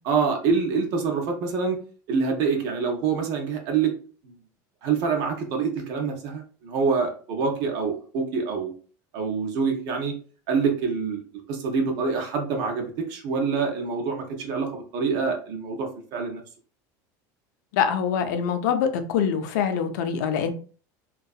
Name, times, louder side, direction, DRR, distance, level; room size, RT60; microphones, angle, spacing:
voice 1, 0.0-1.8 2.1-3.9 4.2-4.3 4.8-8.7 9.1-10.1 10.5-11.2 11.5-16.4, right 5 dB, 45° right, 2 dB, 0.5 m, -26 dB
voice 2, 17.7-20.5, left 7 dB, 85° left, 8 dB, 0.5 m, -24 dB
2.7 x 2.3 x 2.3 m, 0.40 s
cardioid pair, 175°, 9 cm